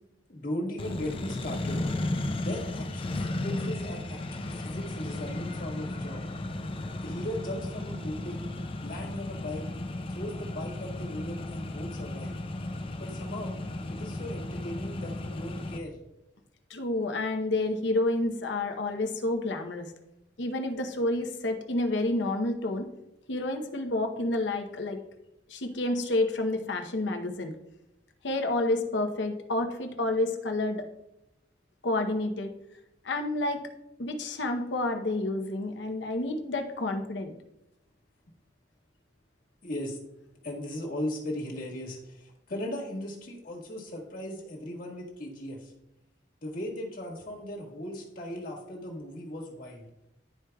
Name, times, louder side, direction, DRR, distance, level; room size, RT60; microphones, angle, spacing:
voice 1, 0.3-1.8 2.4-6.2 7.0-8.5 8.8-9.6 10.1-12.3 13.0-13.6 13.9-16.0 39.6-40.0 40.4-45.7 46.4-49.9, left 1 dB, 50° left, -2 dB, 1.6 m, -37 dB
Accelerating revving vroom, 0.8-15.8, left 2 dB, 30° left, 0.5 m, -35 dB
voice 2, 16.7-19.9 20.4-22.9 23.3-25.0 25.5-27.5 28.2-30.9 31.8-32.5 33.0-33.6 34.0-37.3, left 2 dB, 75° left, 5 dB, 0.8 m, -29 dB
11.5 x 4.7 x 2.3 m, 0.89 s
head